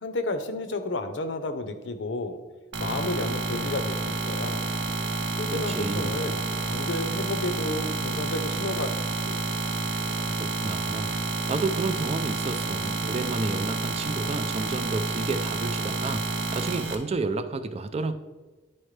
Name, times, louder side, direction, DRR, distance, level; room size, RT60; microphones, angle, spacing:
voice 1, 0.0-2.4 2.8-4.7 5.4-9.0 9.3-9.5, left 2 dB, 80° left, 9 dB, 0.6 m, -32 dB
sound 1, 2.7-16.9, right 3 dB, 85° right, 0.8 m, -29 dB
voice 2, 5.5-6.1 10.4-11.1 11.5-16.2 16.5-18.1, right 3 dB, 35° right, 9 dB, 0.4 m, -31 dB
10.0 x 4.3 x 3.2 m, 1.3 s
head